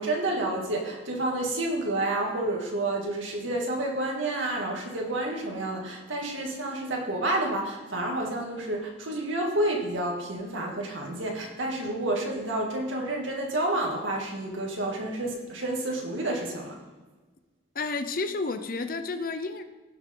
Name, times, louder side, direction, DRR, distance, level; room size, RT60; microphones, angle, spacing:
voice 1, 0.0-16.8, right 1 dB, 90° right, -1 dB, 2.3 m, -29 dB
voice 2, 17.7-19.6, left 3 dB, 45° left, 9 dB, 0.7 m, -31 dB
18.0 x 6.2 x 3.9 m, 1.3 s
head